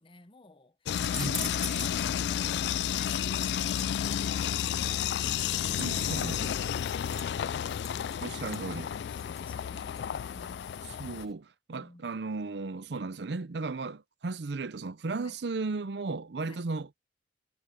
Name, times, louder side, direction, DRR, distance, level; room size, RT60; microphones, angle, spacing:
voice 1, 0.0-10.7 11.7-12.1 15.2-15.4 16.4-16.7, left 4 dB, 30° left, 1.1 m, -53 dB
sound 1, 0.9-11.3, left 9 dB, 65° left, 0.3 m, -31 dB
sound 2, 0.9-11.3, left 1 dB, 5° left, 1.4 m, -45 dB
voice 2, 1.2-1.5 5.8-6.5 8.2-8.9 11.0-16.9, right 3 dB, 65° right, 0.6 m, -35 dB
head